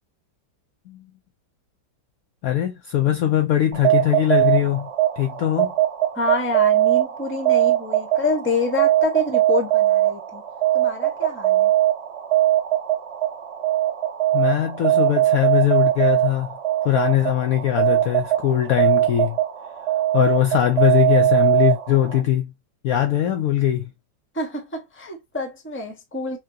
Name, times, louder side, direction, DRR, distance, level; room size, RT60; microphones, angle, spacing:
voice 1, 2.4-4.9 5.2-5.7 14.3-16.6 16.8-19.4 20.1-22.5 22.8-23.9, left 12 dB, 70° left, 0.9 m, -21 dB
sound 1, 3.7-22.2, right 13 dB, 45° right, 0.9 m, -21 dB
voice 2, 6.1-10.4 10.7-11.7 24.3-26.4, left 3 dB, 10° left, 0.7 m, -27 dB
5.8 x 2.3 x 2.7 m
omnidirectional pair, 1.9 m